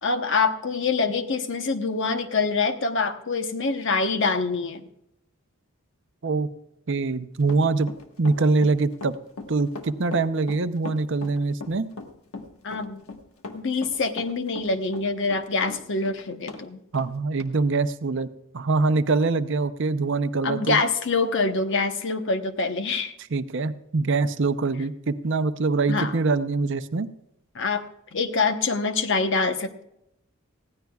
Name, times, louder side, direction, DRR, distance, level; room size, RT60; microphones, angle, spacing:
voice 1, 0.0-4.9 12.6-13.0 13.5-16.8 20.4-23.1 25.9-26.1 27.5-27.8 28.1-29.8, left 4 dB, 60° left, 7 dB, 1.0 m, -25 dB
voice 2, 6.9-7.9 8.2-9.1 9.5-11.9 16.9-18.3 18.5-20.8 23.3-27.1, right 3 dB, 60° right, 11 dB, 0.7 m, -24 dB
Run, 7.4-16.6 16.9-17.1 17.4-17.5, left 3 dB, 90° left, 1.4 m, -38 dB
19.5 x 15.5 x 2.4 m, 0.82 s
head